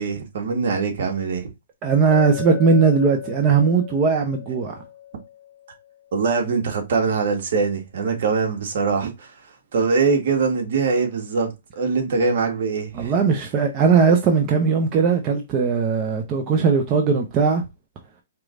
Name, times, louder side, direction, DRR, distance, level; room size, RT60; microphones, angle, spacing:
voice 1, 0.0-1.5 6.1-9.3 9.7-13.1, right 4 dB, 65° right, 1.5 m, -22 dB
voice 2, 1.8-4.7 12.9-17.6, right 5 dB, 30° right, 0.8 m, -19 dB
Chink clink, 2.1-6.1, left 11 dB, 30° left, 1.3 m, -36 dB
4.5 x 3.2 x 2.5 m
hypercardioid pair, 150°, 0 cm